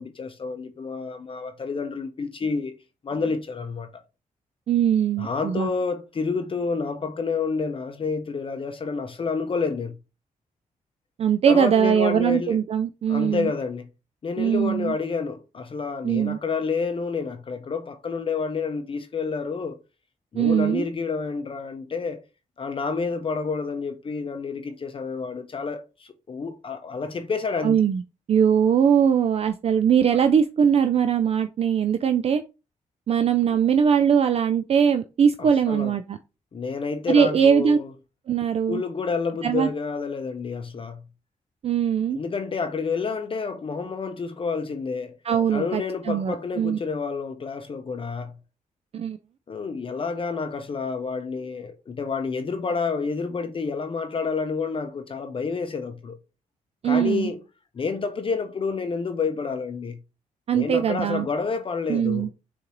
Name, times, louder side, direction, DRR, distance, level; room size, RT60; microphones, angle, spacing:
voice 1, 0.0-2.7 3.0-3.9 5.2-10.0 11.5-12.6 13.1-13.9 14.2-19.8 20.3-22.2 22.6-27.8 35.4-35.9 36.5-37.9 38.7-41.0 42.1-45.2 45.5-48.3 49.5-56.2 56.8-57.4 57.7-60.0 60.5-62.3, left 4 dB, 40° left, 0.6 m, -29 dB
voice 2, 4.7-5.7 11.2-13.5 14.4-15.0 16.0-16.4 20.4-20.8 27.6-28.0 28.3-32.4 33.1-36.2 37.1-37.8 38.3-38.8 39.4-39.7 41.6-42.2 45.3-46.8 48.9-49.2 56.8-57.3 60.5-61.3 61.9-62.3, right 8 dB, 45° right, 0.4 m, -21 dB
6.7 x 2.6 x 2.9 m
cardioid pair, 100°, 14 cm